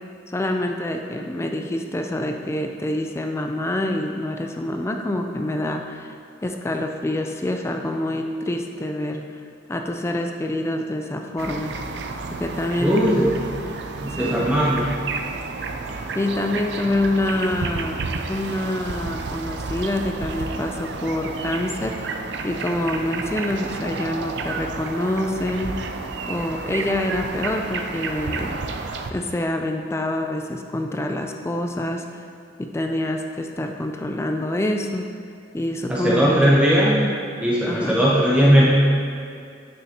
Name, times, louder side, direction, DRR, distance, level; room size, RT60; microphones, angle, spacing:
voice 1, 0.3-6.1 6.4-9.3 9.7-11.8 12.3-13.3 14.2-14.5 16.1-22.2 22.4-25.8 26.3-28.6 29.1-32.2 32.6-35.1 35.5-36.5 37.7-38.0, left 1 dB, 15° left, 4 dB, 0.3 m, -26 dB
sound 1, 11.4-29.1, right 4 dB, 65° right, 0.4 m, -31 dB
voice 2, 12.8-13.3 14.0-14.9 35.9-37.0 37.4-38.7, equal, 5° right, -6 dB, 0.7 m, -18 dB
9.0 x 6.6 x 2.9 m, 2.3 s
head